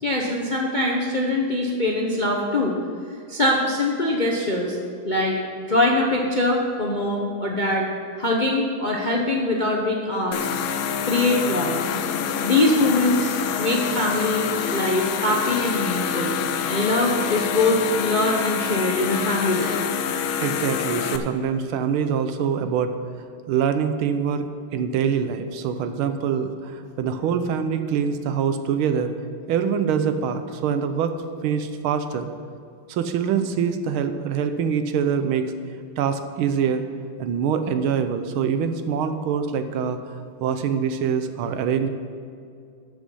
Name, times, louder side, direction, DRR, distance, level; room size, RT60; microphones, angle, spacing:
voice 1, 0.0-2.7 3.3-4.8 5.0-5.4 5.7-7.9 8.2-10.5 11.0-11.8 12.4-16.4 16.7-19.8, left 2 dB, 40° left, -1 dB, 0.6 m, -23 dB
sound 1, 10.3-21.2, left 7 dB, 80° left, 1.4 m, -26 dB
voice 2, 20.4-23.0 23.5-24.5 24.7-29.1 29.5-31.2 31.4-32.3 32.9-35.5 36.0-36.8 37.2-40.0 40.4-41.9, right 7 dB, 80° right, 9 dB, 1.6 m, -24 dB
12.5 x 7.1 x 5.5 m, 2.4 s
omnidirectional pair, 2.3 m